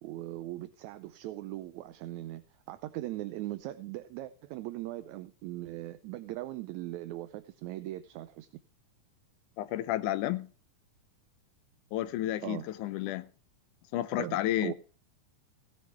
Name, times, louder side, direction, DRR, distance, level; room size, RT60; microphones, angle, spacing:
voice 1, 0.0-8.5 12.4-12.7 14.2-14.7, right 15 dB, 80° right, 1.8 m, -39 dB
voice 2, 9.6-10.5 11.9-13.3 13.9-14.7, left 14 dB, 85° left, 2.3 m, -31 dB
16.5 x 7.8 x 3.4 m
omnidirectional pair, 3.6 m